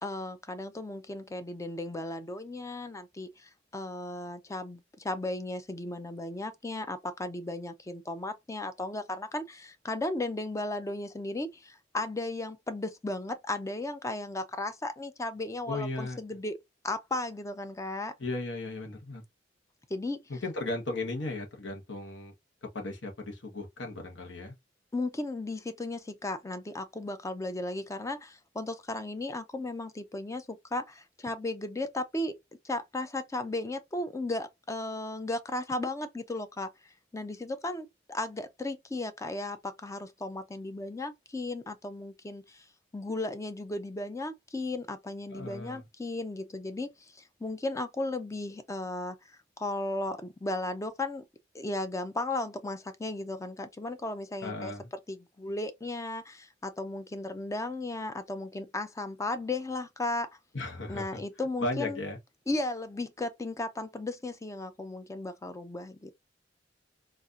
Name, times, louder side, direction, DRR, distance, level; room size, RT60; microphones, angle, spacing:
voice 1, 0.0-16.6 16.8-18.1 19.9-20.2 24.9-32.4 32.6-36.7 37.1-42.6 42.9-49.2 49.6-51.2 51.5-54.7 55.1-60.3 60.9-62.0 62.5-66.1, left 2 dB, 15° left, 0.4 m, -35 dB
voice 2, 15.7-16.2 18.2-19.2 20.3-22.3 22.7-24.5 45.3-45.8 54.4-54.9 60.5-61.2 61.6-62.2, left 2 dB, 65° left, 1.1 m, -36 dB
4.1 x 2.4 x 2.4 m
head